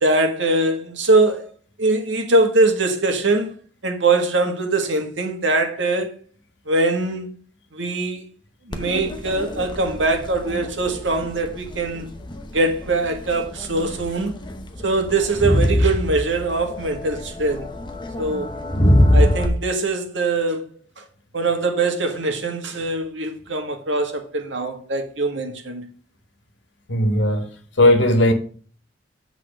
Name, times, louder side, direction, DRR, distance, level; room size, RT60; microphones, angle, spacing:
voice 1, 0.0-1.5 1.8-3.5 3.8-6.1 6.7-7.3 7.7-8.2 8.7-12.1 12.5-14.3 14.8-17.7 18.2-18.5 19.1-20.7 21.0-21.1 21.3-25.9, right 2 dB, 85° right, 1.6 m, -22 dB
Crowd, 8.7-19.5, left 1 dB, 25° left, 0.9 m, -24 dB
voice 2, 26.9-27.5 27.8-28.3, left 1 dB, 75° left, 1.5 m, -16 dB
8.0 x 4.0 x 6.5 m
head